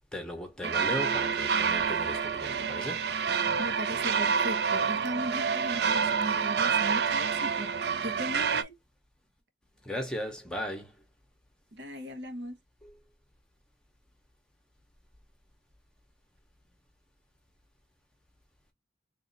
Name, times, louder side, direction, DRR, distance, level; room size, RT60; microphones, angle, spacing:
voice 1, 0.1-3.1 9.8-10.9 12.8-12.9, left 1 dB, 5° left, 0.8 m, -37 dB
sound 1, 0.6-8.6, right 6 dB, 65° right, 0.4 m, -28 dB
voice 2, 3.6-8.8 11.7-12.6, equal, 90° right, 1.1 m, -38 dB
3.1 x 2.6 x 3.9 m
head